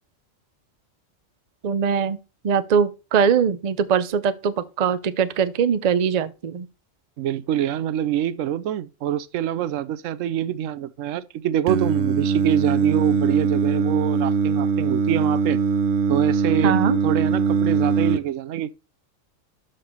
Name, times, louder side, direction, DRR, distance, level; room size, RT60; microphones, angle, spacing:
voice 1, 1.6-2.2 2.4-6.7 16.6-17.0, right 7 dB, 45° right, 0.5 m, -21 dB
voice 2, 7.2-15.6 16.1-16.8 17.0-18.7, right 11 dB, 90° right, 1.0 m, -25 dB
Singing, 11.7-18.2, right 5 dB, 65° right, 1.0 m, -21 dB
12.5 x 4.4 x 4.3 m
omnidirectional pair, 1.3 m